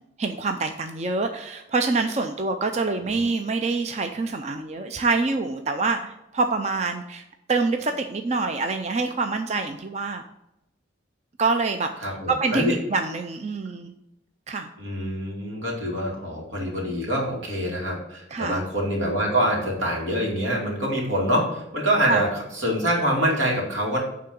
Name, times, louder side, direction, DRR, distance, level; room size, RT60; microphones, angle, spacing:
voice 1, 0.2-7.2 7.5-10.2 11.4-11.9 12.3-13.9 14.5-14.7 18.3-18.6 22.1-22.2, right 3 dB, 35° right, 6 dB, 0.4 m, -26 dB
voice 2, 12.0-12.7 14.8-24.0, equal, 85° right, -2 dB, 2.6 m, -25 dB
9.3 x 3.8 x 6.9 m, 0.88 s
head